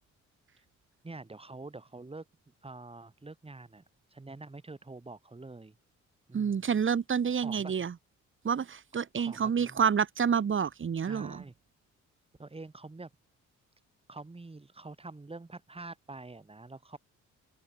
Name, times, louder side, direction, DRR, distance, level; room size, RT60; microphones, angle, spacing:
voice 1, 1.0-2.2 2.6-3.8 4.1-5.8 6.3-6.7 7.3-7.9 9.2-9.8 11.0-11.5 12.4-13.1 14.1-17.0, right 3 dB, 20° right, 4.8 m, -46 dB
voice 2, 6.3-7.9 8.4-11.4, right 7 dB, 40° right, 2.1 m, -28 dB
open air
cardioid pair, 90°, 30 cm